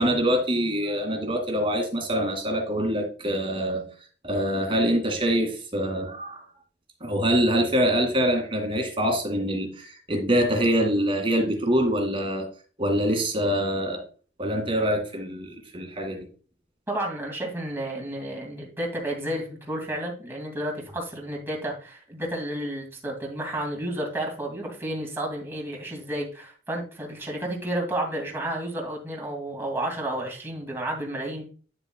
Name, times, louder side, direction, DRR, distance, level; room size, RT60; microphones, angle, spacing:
voice 1, 0.0-3.8 4.2-6.4 7.0-12.5 12.8-14.0 14.4-16.3, equal, 30° right, 3 dB, 2.2 m, -25 dB
voice 2, 16.9-31.5, right 1 dB, 15° right, 0 dB, 2.3 m, -31 dB
9.6 x 6.8 x 2.2 m, 0.39 s
head